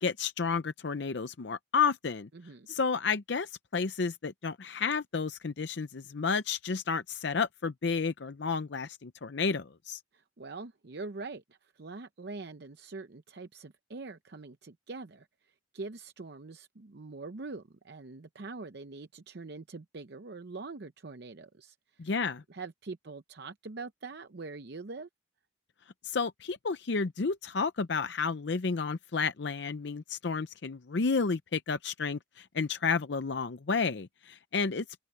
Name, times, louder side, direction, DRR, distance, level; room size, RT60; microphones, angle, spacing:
voice 1, 0.0-2.3 2.7-10.0 22.0-22.4 26.0-34.8, left 5 dB, 60° left, 0.6 m, -31 dB
voice 2, 2.3-2.7 10.1-22.1 22.5-25.1, right 3 dB, 55° right, 0.7 m, -44 dB
head